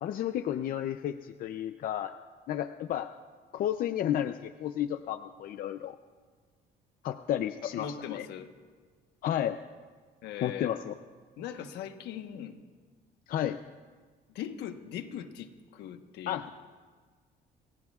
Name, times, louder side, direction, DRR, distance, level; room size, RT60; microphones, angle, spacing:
voice 1, 0.0-2.1 2.5-3.1 3.5-6.0 7.0-8.3 9.2-9.6 10.4-10.9 13.3-13.6 16.3-16.5, left 11 dB, 60° left, 10 dB, 0.5 m, -32 dB
voice 2, 7.6-8.5 10.2-10.7 11.4-12.6 14.3-16.5, left 9 dB, 80° left, 7 dB, 1.2 m, -40 dB
28.5 x 19.5 x 2.4 m, 1.5 s
cardioid pair, 110°, 17 cm